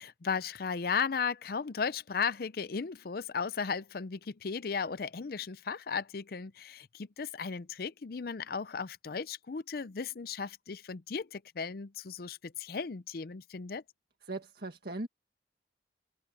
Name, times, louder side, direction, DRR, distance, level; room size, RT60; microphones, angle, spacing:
voice 1, 0.0-13.8, left 5 dB, 55° left, 0.5 m, -35 dB
voice 2, 14.3-15.1, right 2 dB, 60° right, 1.9 m, -38 dB
head